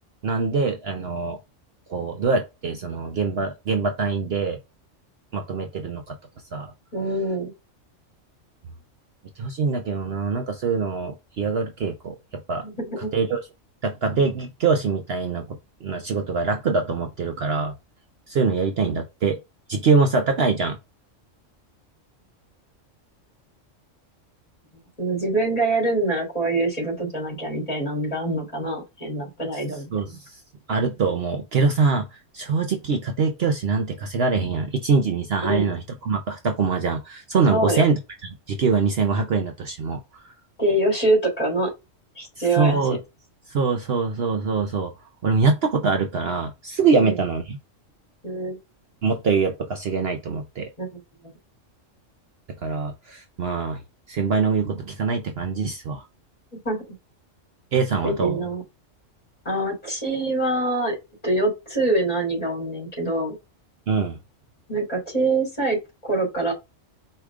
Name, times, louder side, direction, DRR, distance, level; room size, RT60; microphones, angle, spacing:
voice 1, 0.2-1.4 1.9-4.6 5.3-6.1 6.5-6.7 9.4-12.1 12.5-12.6 13.1-13.4 13.8-17.7 18.3-19.4 19.7-20.8 29.9-30.4 30.7-32.1 32.3-40.3 42.5-43.0 43.5-44.9 45.2-47.6 49.0-50.7 52.6-53.8 54.1-56.0 57.7-58.4 63.9-64.2, right 4 dB, 60° right, 0.9 m, -23 dB
voice 2, 6.9-7.5 12.6-13.1 25.0-29.9 35.4-35.7 37.5-37.8 40.6-41.7 42.1-42.8 46.9-47.2 48.2-48.6 50.8-50.9 56.5-57.0 58.0-58.6 59.4-60.9 61.2-63.3 64.7-65.8 66.0-66.5, right 2 dB, 30° left, 3.0 m, -24 dB
4.8 x 2.9 x 3.5 m
omnidirectional pair, 1.3 m